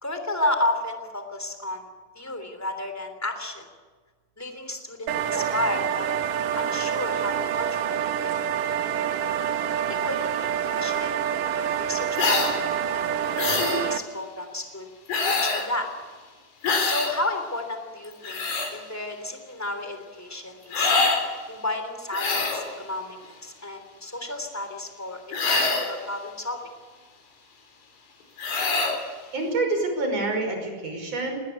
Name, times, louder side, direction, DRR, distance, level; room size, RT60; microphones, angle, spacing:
voice 1, 0.0-1.9 2.1-3.7 4.4-6.1 6.5-8.0 9.8-11.1 11.6-14.9 15.2-15.9 16.8-18.4 18.7-20.9 21.5-26.6, left 2 dB, 5° left, 6 dB, 2.4 m, -32 dB
sound 1, 5.1-14.0, right 9 dB, 70° right, 2.4 m, -27 dB
sound 2, 12.2-12.5 13.4-13.8 15.1-15.7 16.6-17.1 18.0-18.7 20.7-21.2 22.1-22.7 25.3-26.0 28.4-29.0, left 4 dB, 75° left, 5.6 m, -24 dB
voice 2, 29.3-31.4, right 2 dB, 40° right, 3 dB, 6.6 m, -27 dB
20.0 x 19.5 x 8.3 m, 1.4 s
omnidirectional pair, 4.6 m